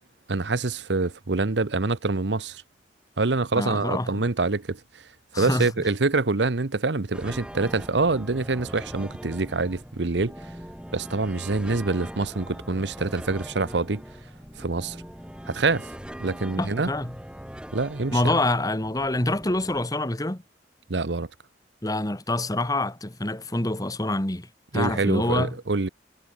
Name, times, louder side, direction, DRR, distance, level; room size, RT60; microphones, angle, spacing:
voice 1, 0.3-2.6 3.2-5.0 5.3-10.5 10.9-14.0 14.6-15.0 15.5-15.9 16.2-16.9 17.7-18.2 20.9-21.3 24.7-25.9, right 3 dB, 80° right, 1.0 m, -26 dB
voice 2, 3.5-4.2 5.3-5.7 16.6-17.1 18.1-20.4 21.8-24.5 24.7-25.5, left 2 dB, 20° left, 1.8 m, -26 dB
sound 1, 7.1-19.9, equal, 5° right, 5.4 m, -41 dB
head